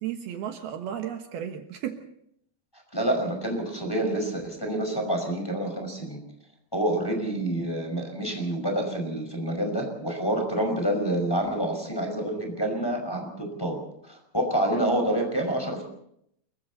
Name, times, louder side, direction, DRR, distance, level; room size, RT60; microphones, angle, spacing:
voice 1, 0.0-2.0, right 10 dB, 70° right, 5 dB, 3.1 m, -34 dB
voice 2, 2.9-6.2 6.7-15.8, right 1 dB, 5° left, 3 dB, 5.0 m, -28 dB
29.5 x 22.5 x 4.2 m, 0.72 s
omnidirectional pair, 4.8 m